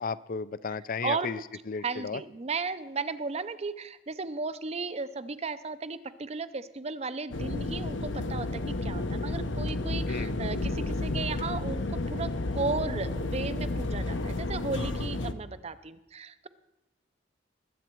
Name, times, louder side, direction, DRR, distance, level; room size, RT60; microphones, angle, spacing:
voice 1, 0.0-1.4 1.7-2.2 10.1-10.4, left 5 dB, 45° left, 17 dB, 0.4 m, -34 dB
voice 2, 1.8-16.5, right 4 dB, 35° right, 14 dB, 0.6 m, -35 dB
sound 1, 7.3-15.3, left 2 dB, 70° left, 0.8 m, -31 dB
20.5 x 8.4 x 4.5 m, 0.98 s
head